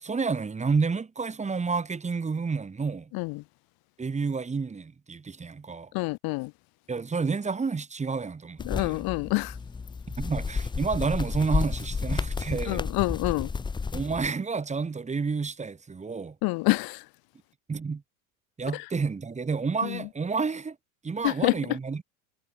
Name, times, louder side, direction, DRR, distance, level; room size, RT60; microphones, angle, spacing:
voice 1, 0.0-3.1 4.0-5.9 6.9-9.0 10.2-12.8 13.9-16.4 17.7-18.0 18.6-20.8 21.0-22.0, right 4 dB, 15° right, 1.8 m, -30 dB
voice 2, 5.9-6.5 8.7-9.5 12.7-13.5 16.4-17.0 18.7-18.8 21.2-21.5, left 24 dB, 50° left, 1.1 m, -27 dB
sound 1, 8.6-14.3, left 4 dB, 10° left, 0.6 m, -31 dB
supercardioid pair, 110°, 45 cm